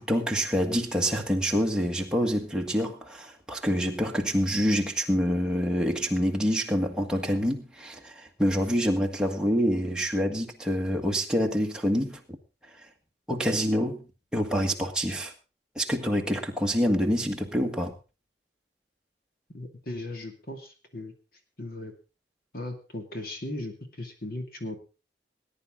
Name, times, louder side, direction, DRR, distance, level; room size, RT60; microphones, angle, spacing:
voice 1, 0.0-12.4 13.3-14.1 14.3-15.3 15.7-17.9, equal, 5° right, 1.6 m, -26 dB
voice 2, 19.5-21.1 21.6-21.9 22.5-24.8, left 1 dB, 50° left, 2.4 m, -37 dB
19.5 x 10.0 x 3.7 m
head